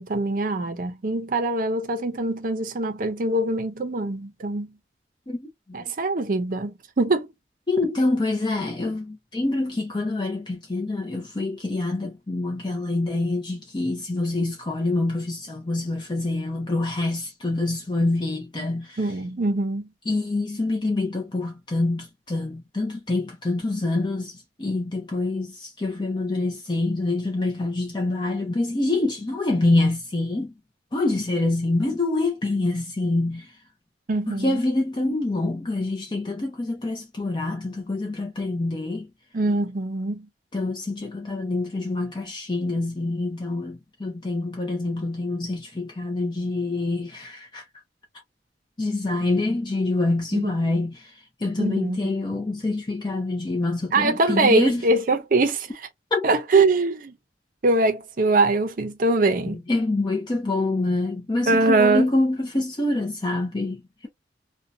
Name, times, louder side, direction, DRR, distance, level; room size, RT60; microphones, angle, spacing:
voice 1, 0.0-4.7 5.7-7.3 19.0-19.9 34.1-34.6 39.3-40.3 50.3-50.5 51.6-52.1 53.9-55.7 56.2-57.1 57.6-59.6 61.5-62.1, right 2 dB, 50° right, 0.5 m, -23 dB
voice 2, 5.3-5.8 7.7-19.0 20.1-30.5 30.9-33.5 34.3-39.1 40.5-47.6 48.8-54.8 56.1-56.6 59.4-64.1, left 2 dB, 25° left, 0.5 m, -26 dB
2.7 x 2.2 x 2.6 m
head